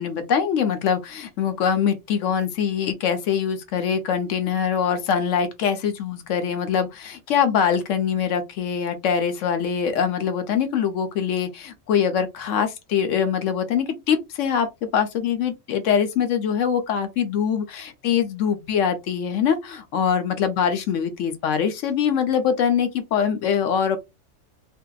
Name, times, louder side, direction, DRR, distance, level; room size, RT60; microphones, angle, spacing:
voice 1, 0.0-14.7 14.9-24.0, left 7 dB, 70° left, 0.9 m, -23 dB
2.6 x 2.2 x 2.2 m
omnidirectional pair, 1.4 m